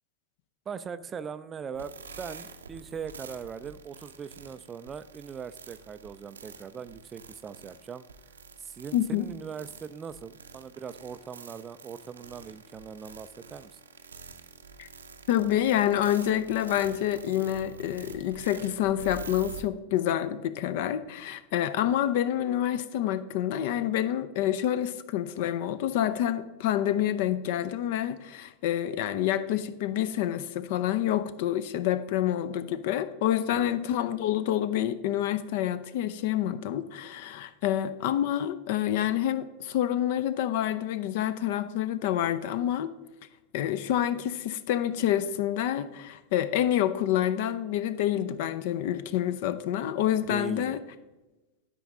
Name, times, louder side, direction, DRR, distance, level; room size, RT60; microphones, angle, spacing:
voice 1, 0.7-8.1 8.6-13.8 33.5-33.7 50.3-50.8, right 6 dB, 20° right, 14 dB, 0.4 m, -40 dB
sound 1, 1.7-19.6, right 5 dB, 70° right, 0.7 m, -47 dB
voice 2, 8.9-9.3 14.8-14.9 15.3-42.9 43.5-50.8, left 11 dB, 50° left, 14 dB, 0.5 m, -28 dB
12.0 x 5.3 x 3.7 m, 1.1 s
figure-of-eight pair, 90°, 0 cm